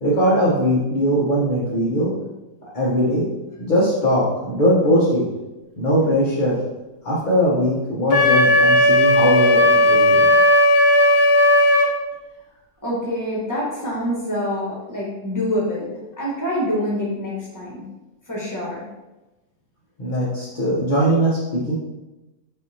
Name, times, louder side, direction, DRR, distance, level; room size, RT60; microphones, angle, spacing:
voice 1, 0.0-2.1 2.7-3.3 3.6-5.2 5.8-6.6 7.0-10.2 20.0-21.7, equal, 40° left, -7 dB, 0.7 m, -20 dB
Wind instrument woodwind instrument, 8.1-11.9, left 1 dB, 70° left, 1.1 m, -15 dB
voice 2, 12.8-17.8 18.3-18.8, equal, 15° left, -5 dB, 1.0 m, -26 dB
5.5 x 2.7 x 2.7 m, 1.0 s
omnidirectional pair, 1.8 m